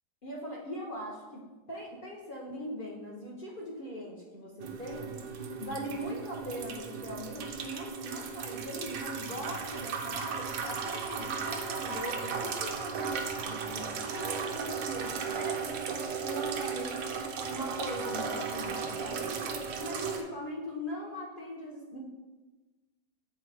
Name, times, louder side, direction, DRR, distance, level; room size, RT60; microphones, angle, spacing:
voice 1, 0.2-1.4 1.7-5.1 5.6-15.8 16.2-17.2 17.5-22.0, equal, 85° left, -4 dB, 0.4 m, -40 dB
sound 1, 4.6-20.2, right 6 dB, 75° right, 1.3 m, -36 dB
7.7 x 3.9 x 3.3 m, 1.2 s
omnidirectional pair, 2.1 m